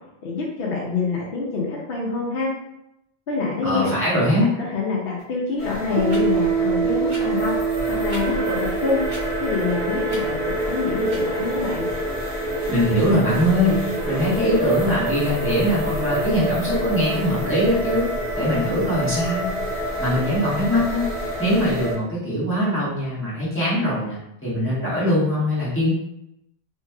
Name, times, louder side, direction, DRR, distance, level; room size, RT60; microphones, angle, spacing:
voice 1, 0.2-2.5 3.3-3.9 4.4-7.5 7.9-8.6 8.8-9.0 9.4-11.9, left 4 dB, 70° left, -4 dB, 0.8 m, -26 dB
voice 2, 3.6-4.5 12.7-18.1 18.3-19.5 20.0-21.1 21.4-25.9, equal, 10° left, -10 dB, 1.3 m, -22 dB
sound 1, 5.2-5.3 6.1-6.2 7.1-7.2 8.0-8.2 9.1-9.2 10.1-10.2 11.0-11.2, right 1 dB, 80° right, 1.1 m, -38 dB
sound 2, 5.6-21.9, equal, 20° right, 1.0 m, -27 dB
Piano, 6.0-13.2, right 7 dB, 60° right, 0.8 m, -27 dB
3.0 x 2.7 x 2.2 m, 0.82 s
omnidirectional pair, 1.1 m